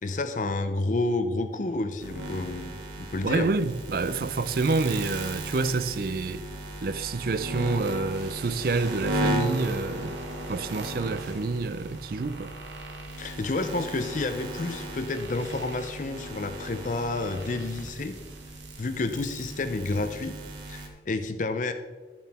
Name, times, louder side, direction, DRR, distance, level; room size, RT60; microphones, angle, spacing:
voice 1, 0.0-3.5 13.2-18.2 18.8-20.4 20.7-21.7, left 2 dB, 45° left, 0.5 m, -30 dB
sound 1, 2.0-20.9, right 1 dB, 85° right, 1.4 m, -36 dB
voice 2, 3.2-6.5 6.8-10.2 10.5-12.6, right 3 dB, 55° right, 0.4 m, -28 dB
11.5 x 7.3 x 4.2 m
head